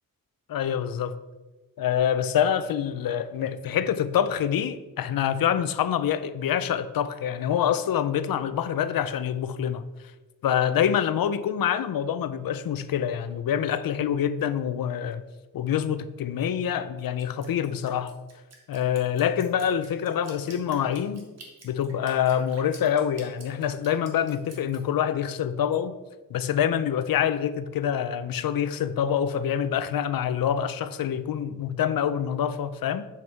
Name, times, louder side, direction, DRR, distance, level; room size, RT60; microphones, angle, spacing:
voice 1, 0.5-1.2 1.8-9.8 10.4-15.2 15.5-18.2 18.7-21.2 21.6-26.0 26.3-33.1, left 9 dB, 90° left, 0.6 m, -26 dB
Drip, 17.2-24.8, right 3 dB, 50° right, 1.7 m, -48 dB
7.7 x 6.1 x 4.5 m
wide cardioid pair, 170°, 34 cm